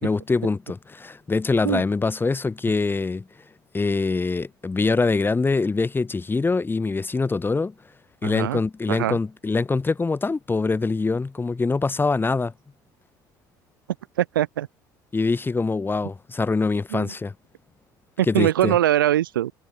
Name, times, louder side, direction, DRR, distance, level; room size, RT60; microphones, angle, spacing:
voice 1, 0.0-3.3 3.7-7.7 8.2-12.5 15.1-17.3 18.2-18.8, left 3 dB, 20° left, 2.3 m, -24 dB
voice 2, 8.2-8.6 8.9-9.2 14.2-14.7 16.9-17.1 18.2-19.5, right 12 dB, 80° right, 1.3 m, -22 dB
hypercardioid pair, 65°, 11 cm